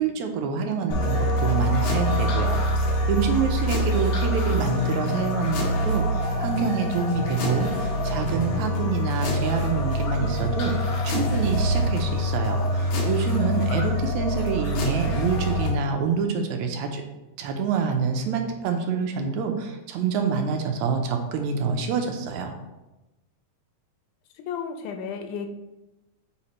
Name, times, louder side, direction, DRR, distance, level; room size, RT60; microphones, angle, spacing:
voice 1, 0.0-17.0 17.4-22.5, right 5 dB, 80° right, 5 dB, 2.0 m, -27 dB
sound 1, 0.9-15.7, equal, 65° left, 2.4 m, -25 dB
voice 2, 24.3-25.5, left 6 dB, 90° left, 5 dB, 2.2 m, -33 dB
8.5 x 4.4 x 3.1 m, 1.0 s
omnidirectional pair, 3.4 m